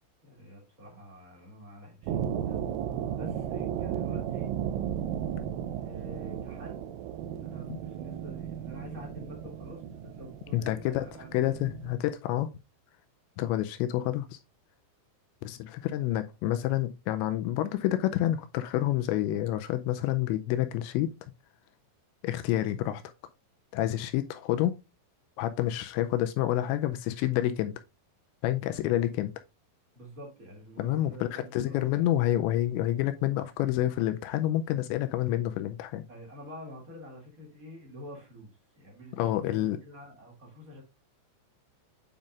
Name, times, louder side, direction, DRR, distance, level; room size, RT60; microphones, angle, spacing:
voice 1, 0.2-2.6 3.2-4.5 5.8-6.8 7.4-11.5 29.9-31.9 36.1-40.8, equal, 35° right, 1.4 m, -47 dB
sound 1, 2.0-11.9, right 9 dB, 85° right, 3.2 m, -35 dB
voice 2, 10.5-11.1 11.3-12.5 13.4-14.4 15.4-21.1 22.2-23.0 23.7-24.7 25.4-27.8 28.4-29.3 30.8-36.0 39.2-39.8, left 13 dB, 85° left, 2.6 m, -28 dB
8.9 x 5.3 x 2.4 m
omnidirectional pair, 5.6 m